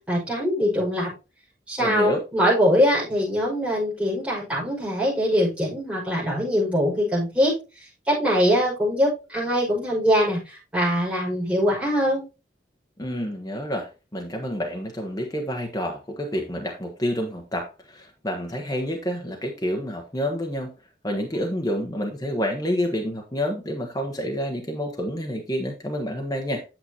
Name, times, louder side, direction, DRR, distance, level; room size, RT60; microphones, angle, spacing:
voice 1, 0.1-1.1 1.7-7.5 8.1-12.2, equal, 5° right, 5.6 m, -22 dB
voice 2, 1.8-2.2 13.0-20.7 21.0-26.6, equal, 20° left, 1.1 m, -28 dB
8.9 x 6.9 x 2.8 m
head